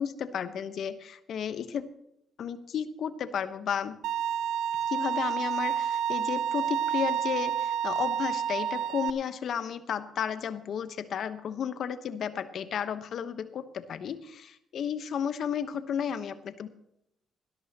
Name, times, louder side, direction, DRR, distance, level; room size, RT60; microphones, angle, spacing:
voice 1, 0.0-1.9 2.4-4.0 4.9-16.7, left 8 dB, 70° left, 11 dB, 1.0 m, -33 dB
Bowed string instrument, 4.0-9.1, right 9 dB, 90° right, 0.5 m, -29 dB
18.5 x 12.5 x 2.9 m, 0.79 s
supercardioid pair, 65°, 0 cm